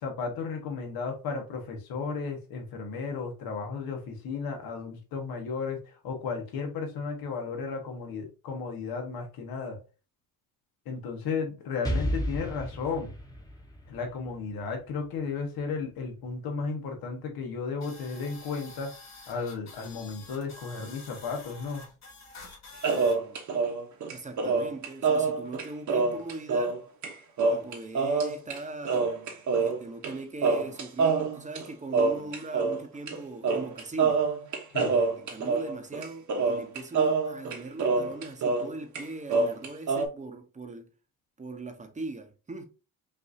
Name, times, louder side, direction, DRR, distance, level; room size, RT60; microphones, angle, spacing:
voice 1, 0.0-9.8 10.8-13.1 13.9-18.9 19.3-21.8 34.7-35.0, left 5 dB, 80° left, 1.3 m, -34 dB
Explosion, 11.8-15.6, equal, 10° left, 1.0 m, -34 dB
sound 1, 17.8-23.2, left 3 dB, 50° left, 2.0 m, -48 dB
sound 2, 22.8-26.8 27.0-27.1 27.4-28.6 28.8-30.1 30.4-32.8 33.1-33.2 33.4-38.7 39.0-40.1, right 4 dB, 55° right, 1.1 m, -26 dB
voice 2, 24.1-26.8 27.5-29.1 29.6-34.2 35.2-40.9 41.4-42.6, right 2 dB, 20° right, 0.9 m, -40 dB
5.6 x 2.7 x 2.7 m
cardioid pair, 110°, 35 cm